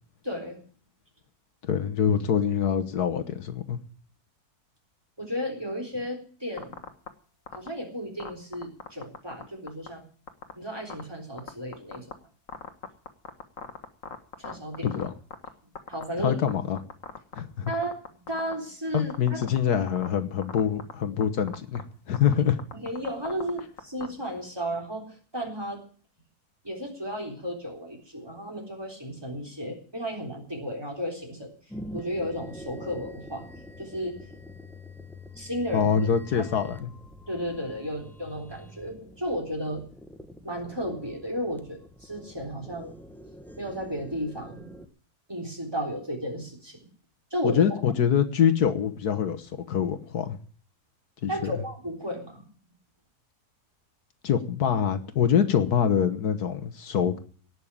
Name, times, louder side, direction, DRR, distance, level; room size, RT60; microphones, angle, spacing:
voice 1, 0.2-0.6 5.2-6.8 7.5-10.0 10.6-12.0 14.4-14.9 15.9-16.4 17.7-17.9 18.2-19.7 22.7-25.8 26.6-31.5 31.9-33.4 33.8-34.1 35.4-36.4 37.3-39.8 40.4-43.0 43.6-44.7 45.3-46.8 47.3-47.7 51.3-52.4, equal, 15° right, 2 dB, 3.8 m, -34 dB
voice 2, 1.6-3.8 14.8-15.1 16.2-16.8 17.3-17.7 18.9-22.6 35.7-36.9 47.4-50.4 51.2-51.5 54.2-57.2, left 8 dB, 80° left, 8 dB, 1.7 m, -25 dB
sound 1, 6.6-7.1 7.5-7.7 8.2-9.4 9.7-9.9 10.3-10.5 10.9-11.0 11.4-12.1 12.5-15.5 15.7-16.5 16.8-17.4 17.7-18.5 19.0-19.6 19.9-20.1 20.4-20.9 21.2-21.3 21.5-21.8 22.1-22.3 22.6-24.1, left 6 dB, 55° left, 1.9 m, -37 dB
sound 2, 31.7-44.9, left 1 dB, ahead, 1.1 m, -45 dB
18.0 x 6.6 x 10.0 m, 0.44 s
omnidirectional pair, 1.6 m